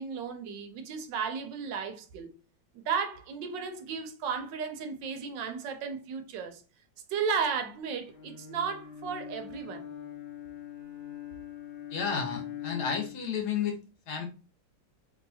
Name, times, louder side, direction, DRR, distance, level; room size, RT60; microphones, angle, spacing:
voice 1, 0.0-2.3 2.7-6.6 7.1-9.9, right 6 dB, 75° right, 1.3 m, -34 dB
Bowed string instrument, 8.1-13.3, left 10 dB, 50° left, 0.7 m, -42 dB
voice 2, 11.9-13.8 14.1-14.3, left 7 dB, 65° left, 1.3 m, -31 dB
3.4 x 2.7 x 2.7 m
omnidirectional pair, 2.0 m